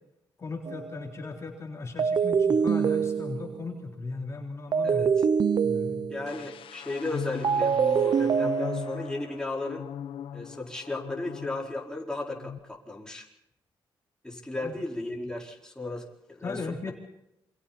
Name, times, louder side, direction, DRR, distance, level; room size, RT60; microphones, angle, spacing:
voice 1, 0.4-5.1 5.6-6.1 14.5-14.7 16.4-16.9, left 3 dB, 35° left, 0 dB, 3.8 m, -37 dB
sound 1, 0.7-1.0 2.0-3.7 4.7-6.4 7.4-9.1, right 6 dB, 50° right, 0.8 m, -25 dB
voice 2, 4.8-5.2 6.1-9.8 10.3-13.3 14.2-16.6, left 2 dB, 10° left, -2 dB, 4.8 m, -35 dB
sound 2, 6.3-12.0 12.3-12.6, left 9 dB, 80° left, 1.1 m, -39 dB
28.5 x 25.5 x 4.3 m, 0.84 s
cardioid pair, 130°, 9 cm